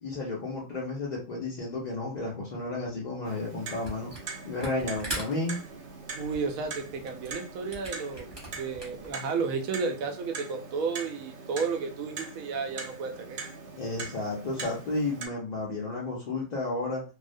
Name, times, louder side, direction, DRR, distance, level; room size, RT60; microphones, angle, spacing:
voice 1, 0.0-4.1 4.4-5.6 13.8-17.0, left 2 dB, 65° left, -4 dB, 0.4 m, -32 dB
Clock, 3.2-15.3, right 4 dB, 65° right, 0.5 m, -42 dB
Camera, 3.8-4.3 4.6-9.1, right 1 dB, 25° right, 0.8 m, -40 dB
voice 2, 6.2-13.4, right 5 dB, 90° right, 5 dB, 1.0 m, -32 dB
2.4 x 2.1 x 2.5 m, 0.34 s
omnidirectional pair, 1.4 m